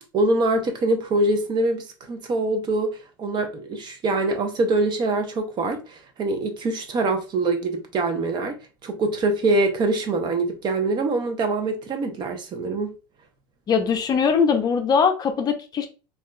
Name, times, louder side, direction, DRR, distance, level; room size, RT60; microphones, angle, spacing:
voice 1, 0.1-8.6 8.8-12.9, right 2 dB, 40° right, 0.7 m, -24 dB
voice 2, 13.7-15.9, left 6 dB, 35° left, 0.5 m, -21 dB
3.5 x 2.4 x 2.2 m
hypercardioid pair, 100°, 12 cm